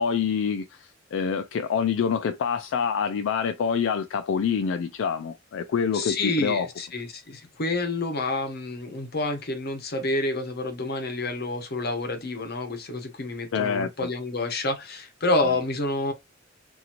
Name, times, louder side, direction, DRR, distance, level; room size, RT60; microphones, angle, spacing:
voice 1, 0.0-6.7 13.5-13.9, left 6 dB, 75° left, 0.3 m, -26 dB
voice 2, 5.9-16.1, left 2 dB, 55° left, 0.9 m, -28 dB
2.8 x 2.6 x 2.5 m
head